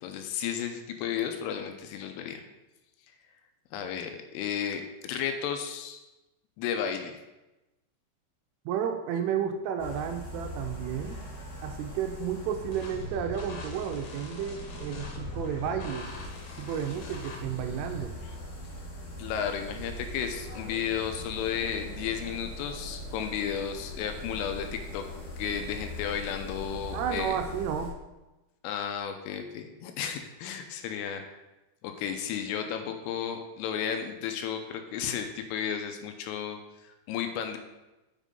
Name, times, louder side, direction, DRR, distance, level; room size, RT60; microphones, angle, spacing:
voice 1, 0.0-2.4 3.7-6.0 6.6-7.2 19.2-25.1 25.4-27.4 28.6-31.4 31.8-37.6, left 8 dB, 85° left, 6 dB, 3.2 m, -33 dB
voice 2, 8.7-11.2 11.6-16.1 16.6-18.2 26.9-28.0, right 8 dB, 80° right, 5 dB, 3.0 m, -32 dB
sound 1, 9.8-27.9, left 1 dB, 40° left, 2.7 m, -41 dB
sound 2, 12.7-18.0, equal, 65° left, 3.0 m, -42 dB
7.5 x 6.1 x 5.3 m, 1.0 s
omnidirectional pair, 5.9 m